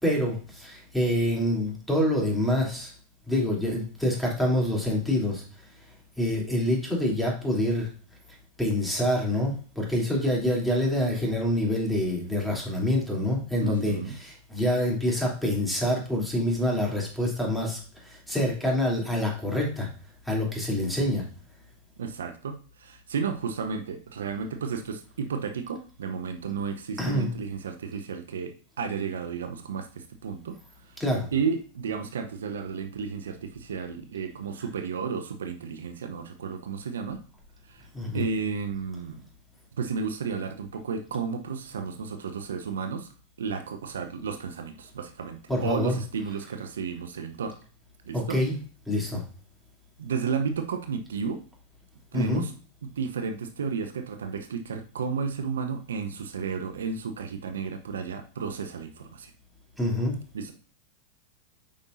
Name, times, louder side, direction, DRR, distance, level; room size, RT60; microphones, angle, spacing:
voice 1, 0.0-2.9 3.3-5.4 6.2-7.9 8.6-17.8 18.3-19.9 20.3-21.2 27.0-27.3 31.0-31.2 37.9-38.2 45.5-45.9 48.1-48.6 48.9-49.2 52.1-52.4 59.8-60.2, left 1 dB, ahead, -3 dB, 3.2 m, -26 dB
voice 2, 13.6-14.2 22.0-30.6 30.9-31.0 31.3-37.2 37.6-37.9 38.1-39.2 39.8-43.1 43.4-47.6 48.1-48.4 50.0-51.4 52.1-52.5 53.0-59.3 60.3-60.5, right 5 dB, 80° right, 7 dB, 0.8 m, -32 dB
8.8 x 5.4 x 2.7 m, 0.40 s
hypercardioid pair, 105°, 0 cm